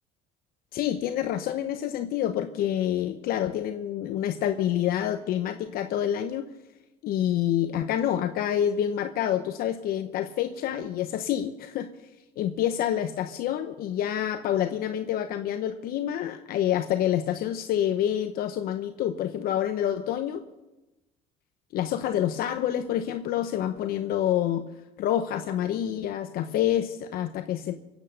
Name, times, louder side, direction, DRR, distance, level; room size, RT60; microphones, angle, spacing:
voice 1, 0.7-6.5 7.0-11.9 12.4-20.4 21.7-24.6 25.0-27.8, left 11 dB, 60° left, 8 dB, 0.9 m, -27 dB
24.0 x 8.3 x 6.4 m, 1.0 s
supercardioid pair, 105°, 17 cm